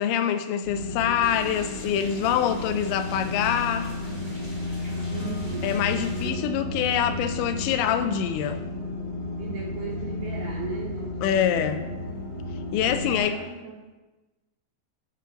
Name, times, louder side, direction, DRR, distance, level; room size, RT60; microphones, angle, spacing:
voice 1, 0.0-3.9 5.6-8.6 11.2-11.8 12.7-13.4, left 9 dB, 85° left, 10 dB, 2.7 m, -25 dB
sound 1, 0.6-13.2, left 2 dB, 65° left, 1.2 m, -33 dB
sound 2, 1.2-6.3, equal, 45° left, 0.4 m, -44 dB
voice 2, 4.9-6.5 9.4-11.9 12.8-13.8, right 4 dB, 75° right, -3 dB, 2.0 m, -38 dB
11.0 x 3.7 x 5.7 m, 1.1 s
omnidirectional pair, 5.3 m